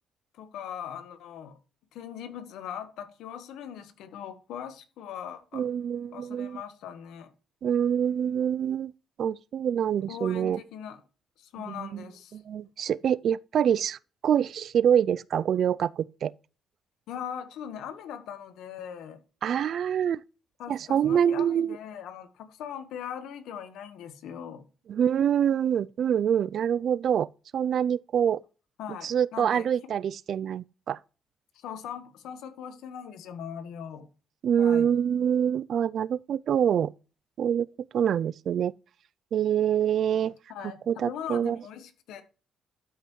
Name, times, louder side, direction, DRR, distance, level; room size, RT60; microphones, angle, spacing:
voice 1, 0.3-1.6 1.9-5.7 6.1-7.3 10.1-11.0 11.4-12.4 17.1-19.2 20.6-24.6 28.8-29.7 31.5-34.1 34.6-34.9 40.5-42.2, left 8 dB, 85° left, 1.3 m, -40 dB
voice 2, 5.5-6.6 7.6-8.9 9.2-10.6 11.7-12.0 12.3-14.0 14.2-16.3 19.4-20.2 20.7-21.8 24.9-27.3 27.5-28.4 29.0-31.0 34.4-36.9 37.4-37.7 37.9-38.7 39.3-40.3 40.9-41.6, right 9 dB, 65° right, 0.3 m, -25 dB
12.5 x 5.5 x 3.1 m
cardioid pair, 90°, 0 cm